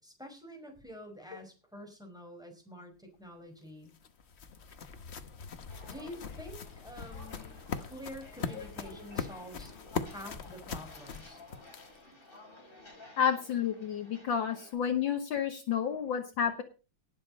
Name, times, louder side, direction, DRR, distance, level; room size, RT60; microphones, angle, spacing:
voice 1, 0.0-4.0 5.9-9.7 10.0-11.4, equal, ahead, 2 dB, 4.9 m, -48 dB
sound 1, 3.6-12.1, left 5 dB, 45° left, 0.9 m, -41 dB
Walk footsteps, 5.7-14.7, left 2 dB, 25° left, 4.3 m, -54 dB
voice 2, 13.2-16.6, left 8 dB, 65° left, 6 dB, 1.8 m, -30 dB
18.5 x 7.3 x 5.3 m, 0.34 s
omnidirectional pair, 2.4 m